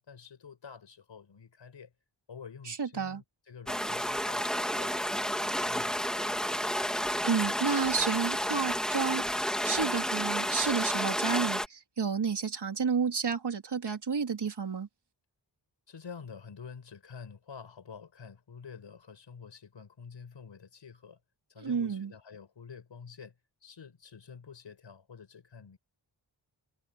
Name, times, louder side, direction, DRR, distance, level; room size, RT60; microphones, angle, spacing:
voice 1, 0.0-1.9 2.3-6.8 15.9-21.2 21.5-23.3 23.6-25.8, left 6 dB, 85° left, 5.3 m, -49 dB
voice 2, 2.7-3.2 7.2-14.9 21.6-22.1, right 6 dB, 65° right, 3.9 m, -31 dB
sound 1, 3.7-11.7, equal, ahead, 2.5 m, -31 dB
wide cardioid pair, 105°, 43 cm